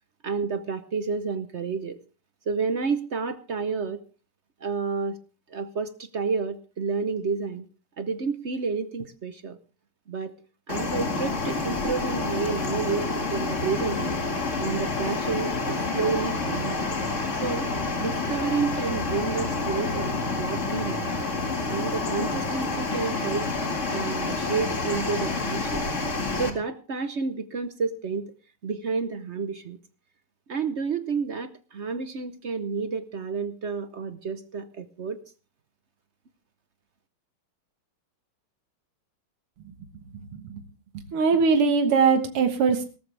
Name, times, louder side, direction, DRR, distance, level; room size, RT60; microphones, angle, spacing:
voice 1, 0.2-2.0 2.5-4.0 4.6-5.2 5.5-7.7 8.0-9.6 10.1-10.3 10.7-14.2 14.6-16.9 17.3-17.7 18.0-21.2 21.7-23.5 23.9-25.9 26.3-28.3 28.6-29.8 30.5-35.2, right 5 dB, 55° right, 12 dB, 0.8 m, -30 dB
sound 1, 10.7-26.5, left 3 dB, 35° left, 2.2 m, -28 dB
voice 2, 40.3-40.6 40.9-42.9, right 5 dB, 90° right, 7 dB, 2.3 m, -21 dB
18.5 x 14.0 x 3.4 m, 0.34 s
omnidirectional pair, 2.4 m